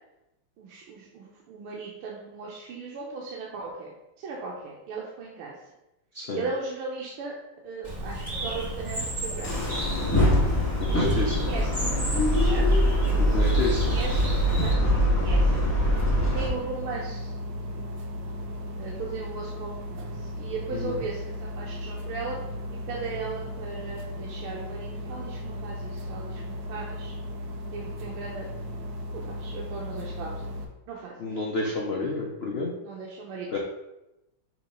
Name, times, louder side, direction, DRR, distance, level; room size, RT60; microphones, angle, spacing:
voice 1, 0.6-5.6 6.3-7.3 7.6-9.5 10.9-12.0 12.5-12.7 13.1-13.3 13.8-15.6 16.2-17.3 18.8-22.4 22.7-27.1 27.7-28.5 29.1-30.5 30.9-31.1 32.8-33.6, right 4 dB, 90° right, -2 dB, 1.7 m, -37 dB
Bird, 7.8-14.7, right 1 dB, 20° right, 1.6 m, -34 dB
sound 1, 9.4-16.5, equal, 15° left, 0.6 m, -23 dB
voice 2, 10.8-11.4 13.2-14.0 20.7-21.0 31.2-32.7 33.5-33.6, left 3 dB, 70° left, -2 dB, 0.5 m, -29 dB
sound 2, 14.8-30.6, left 1 dB, 60° right, 1.2 m, -36 dB
6.0 x 3.1 x 5.2 m, 0.92 s
omnidirectional pair, 2.4 m